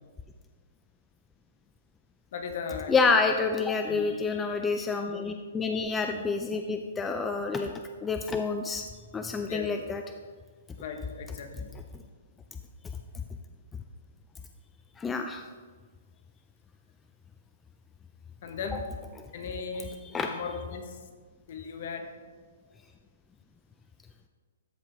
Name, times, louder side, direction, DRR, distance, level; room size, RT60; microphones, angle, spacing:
voice 1, 2.3-3.1 3.9-4.1 9.5-9.7 10.8-11.7 18.4-18.9 19.3-21.0 21.5-22.1, left 5 dB, 55° left, 5 dB, 1.2 m, -37 dB
voice 2, 2.9-8.9 9.1-10.0 15.0-15.4 20.0-20.3, left 4 dB, 10° left, 5 dB, 0.4 m, -28 dB
13.5 x 5.0 x 3.5 m, 1.5 s
hypercardioid pair, 155°, 0 cm